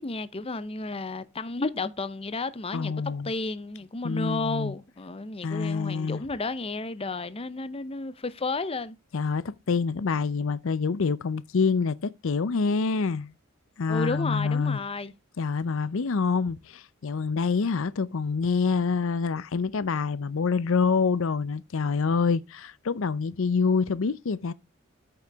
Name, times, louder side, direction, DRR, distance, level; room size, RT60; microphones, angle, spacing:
voice 1, 0.0-2.9 3.2-9.0 13.9-15.1, left 3 dB, 25° left, 0.7 m, -32 dB
voice 2, 2.7-3.3 4.0-4.7 5.4-6.2 9.1-13.3 13.8-14.8 15.4-24.5, left 5 dB, 65° left, 0.5 m, -26 dB
13.5 x 6.7 x 3.5 m
head